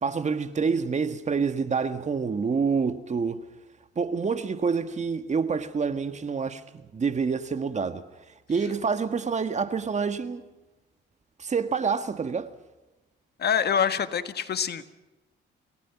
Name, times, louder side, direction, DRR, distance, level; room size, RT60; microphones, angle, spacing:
voice 1, 0.0-3.4 4.0-6.6 6.9-8.0 8.5-10.4 11.4-12.5, right 5 dB, 35° right, 1.6 m, -27 dB
voice 2, 13.4-14.8, left 7 dB, 55° left, 1.6 m, -25 dB
28.5 x 18.5 x 5.9 m
cardioid pair, 90°, 20 cm